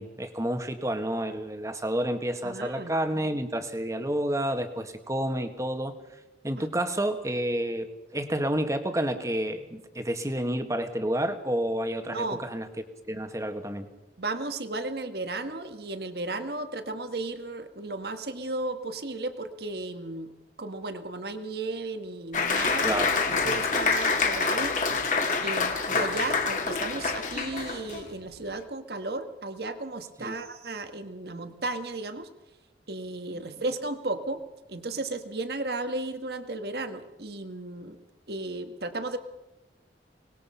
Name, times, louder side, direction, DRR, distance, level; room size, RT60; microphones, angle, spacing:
voice 1, 0.0-5.9 6.4-7.9 8.1-12.7 13.1-13.9 22.8-23.1 30.2-30.4 33.3-33.5, right 1 dB, 15° right, 7 dB, 1.6 m, -29 dB
voice 2, 2.4-2.9 6.6-6.7 12.1-12.4 14.2-20.3 20.6-23.0 23.4-24.8 25.4-32.3 32.9-34.4 34.7-38.0 38.3-39.2, right 2 dB, 60° right, 8 dB, 1.7 m, -34 dB
Applause, 22.3-28.1, left 4 dB, 45° left, 2.4 m, -27 dB
24.5 x 20.0 x 5.7 m, 0.97 s
head